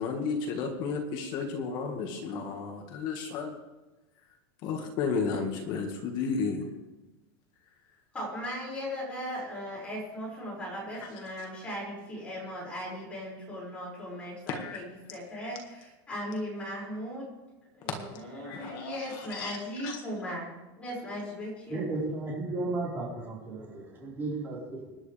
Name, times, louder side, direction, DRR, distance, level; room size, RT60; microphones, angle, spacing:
voice 1, 0.0-3.5 4.6-6.6 14.5-14.8 18.4-19.6 19.8-20.0, left 5 dB, 35° left, 3 dB, 1.9 m, -33 dB
voice 2, 8.1-17.3 17.7-20.5 20.8-21.8, equal, 10° left, -5 dB, 6.1 m, -38 dB
voice 3, 21.7-24.9, right 2 dB, 15° right, -5 dB, 4.6 m, -34 dB
25.0 x 11.0 x 3.5 m, 1.1 s
supercardioid pair, 170°, 13 cm